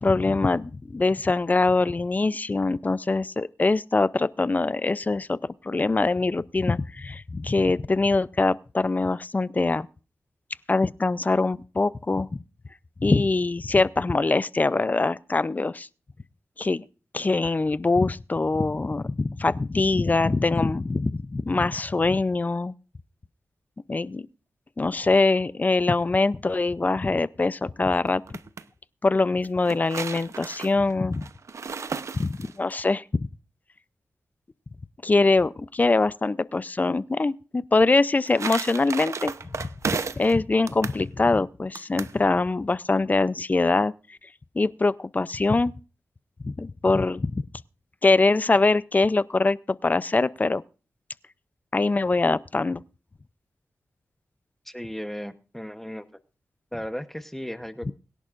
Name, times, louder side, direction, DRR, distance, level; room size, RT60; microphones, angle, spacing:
voice 1, 0.0-5.4 5.6-9.9 10.7-12.4 13.0-15.9 16.6-16.9 17.1-22.7 23.9-24.3 24.8-28.2 29.0-31.3 32.1-33.0 35.0-44.2 44.5-45.7 46.4-47.4 48.0-50.6 51.7-52.8, left 3 dB, 30° left, 0.5 m, -23 dB
sound 1, 28.1-28.6 29.4-32.7 37.9-40.3 40.7-41.0 41.8-42.2, right 5 dB, 65° right, 0.8 m, -33 dB
voice 2, 54.6-56.0 56.7-57.9, equal, 5° left, 0.9 m, -35 dB
23.0 x 11.0 x 2.5 m
wide cardioid pair, 95°, 5 cm